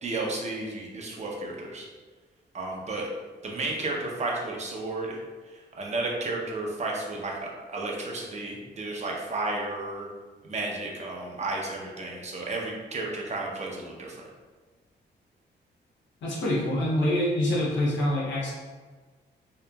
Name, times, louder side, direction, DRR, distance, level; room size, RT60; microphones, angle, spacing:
voice 1, 0.0-1.9 2.5-3.1 3.4-5.2 5.5-7.3 7.7-10.1 10.4-14.2, right 2 dB, 35° right, -1 dB, 0.6 m, -32 dB
voice 2, 16.2-18.5, left 1 dB, 85° left, -5 dB, 0.8 m, -25 dB
2.8 x 2.4 x 2.2 m, 1.4 s
cardioid pair, 80°, 19 cm